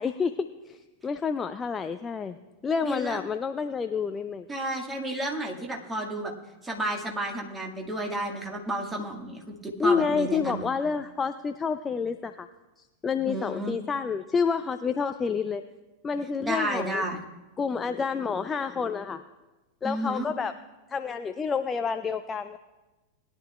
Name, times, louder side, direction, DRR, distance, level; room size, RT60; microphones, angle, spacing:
voice 1, 0.0-2.4 2.6-4.5 9.8-12.5 13.0-15.6 16.0-17.0 17.6-19.2 19.8-20.5 20.9-22.6, left 5 dB, 20° left, 9 dB, 0.4 m, -29 dB
voice 2, 2.8-3.2 4.5-6.3 6.6-10.6 13.3-13.8 16.4-17.2 19.8-20.3, right 1 dB, 15° right, 0 dB, 1.8 m, -31 dB
20.5 x 10.5 x 2.3 m, 1.2 s
figure-of-eight pair, 90°, 0 cm